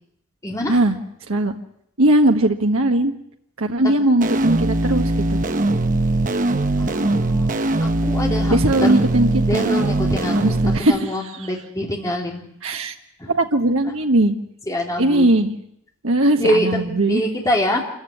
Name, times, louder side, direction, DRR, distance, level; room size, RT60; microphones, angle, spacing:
voice 1, 0.4-0.8 3.8-3.9 6.8-9.0 9.5-12.5 13.2-13.3 14.7-15.3 16.4-17.8, equal, 15° left, 0 dB, 3.3 m, -25 dB
voice 2, 2.0-3.1 3.6-5.4 8.5-9.7 10.3-11.1 12.6-12.9 13.3-14.3 15.0-15.5 16.0-17.2, right 1 dB, 75° right, 3 dB, 1.5 m, -19 dB
sound 1, 4.2-10.8, right 2 dB, 35° right, 0.9 m, -20 dB
26.5 x 15.5 x 9.9 m, 0.75 s
head